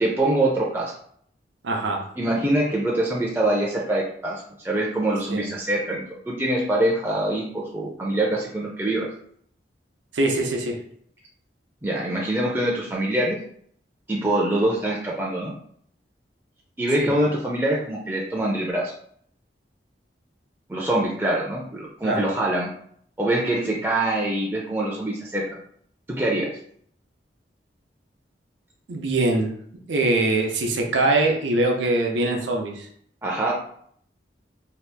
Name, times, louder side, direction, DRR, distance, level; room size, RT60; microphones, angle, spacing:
voice 1, 0.0-0.9 2.2-9.1 11.8-13.4 14.1-15.5 16.8-18.9 20.7-22.7 23.2-25.4 26.1-26.5 33.2-33.5, right 1 dB, 10° right, -4 dB, 0.4 m, -24 dB
voice 2, 1.6-2.0 5.3-5.5 10.1-10.8 17.0-17.1 22.0-22.2 28.9-29.5 29.9-32.9, right 2 dB, 90° right, 1 dB, 0.6 m, -23 dB
2.8 x 2.4 x 3.3 m, 0.64 s
head